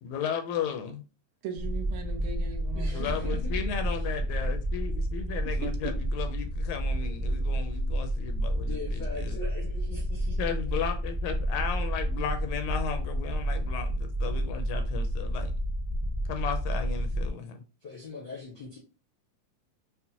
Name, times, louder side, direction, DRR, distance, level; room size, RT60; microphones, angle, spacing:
voice 1, 0.0-1.0 2.9-9.4 10.4-15.5 16.3-17.6, left 7 dB, 80° left, 1.8 m, -35 dB
voice 2, 1.4-3.4 5.6-5.7, right 5 dB, 75° right, 1.9 m, -39 dB
sound 1, 1.6-17.3, right 1 dB, 15° right, 0.5 m, -30 dB
voice 3, 2.7-4.0 8.5-10.4 17.8-18.8, left 3 dB, 65° left, 1.1 m, -41 dB
5.6 x 2.1 x 2.7 m
omnidirectional pair, 3.4 m